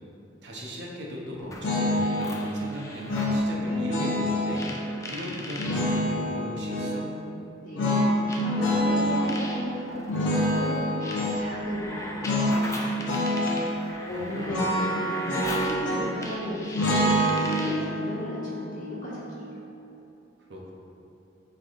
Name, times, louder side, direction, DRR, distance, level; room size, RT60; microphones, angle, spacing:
voice 1, 0.4-4.7 5.1-7.2 14.1-14.6 20.5-20.7, left 1 dB, 60° right, -3 dB, 0.6 m, -37 dB
sound 1, 1.4-3.4 4.5-5.8 6.9-7.0 8.3-17.9, left 1 dB, 15° left, 0.3 m, -39 dB
sound 2, 1.6-2.3 3.1-4.6 5.6-7.0 7.8-9.2 10.1-11.4 12.2-12.6 12.9-13.7 14.5-16.2 16.7-19.8, equal, 75° left, 0.7 m, -26 dB
voice 2, 7.6-8.0 8.4-13.3 14.1-19.4, equal, 45° left, -9 dB, 1.3 m, -35 dB
6.1 x 3.3 x 2.4 m, 2.8 s
head